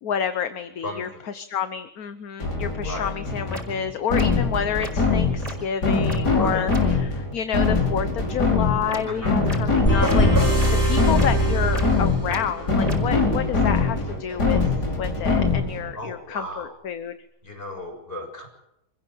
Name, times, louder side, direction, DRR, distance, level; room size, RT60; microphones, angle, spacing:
voice 1, 0.0-17.1, left 8 dB, 65° left, 10 dB, 1.5 m, -29 dB
voice 2, 0.8-1.2 2.8-3.1 6.4-6.7 9.0-9.4 15.9-16.7 17.4-18.5, left 1 dB, 35° left, 3 dB, 7.4 m, -35 dB
sound 1, 2.4-15.9, left 4 dB, 80° left, 5.5 m, -23 dB
sound 2, 2.9-3.0 3.5-3.6 4.1-4.3 4.8-4.9 5.4-5.5 6.1-6.2 6.7-6.8 8.9-9.0 9.5-9.6 10.1-10.2 10.6-10.7 11.2-11.3 11.7-11.8 12.3-12.4 12.9-13.0, right 1 dB, 20° right, 5.7 m, -35 dB
sound 3, 9.9-12.7, right 1 dB, 10° left, 5.7 m, -22 dB
27.0 x 15.5 x 7.8 m, 0.82 s
omnidirectional pair, 1.7 m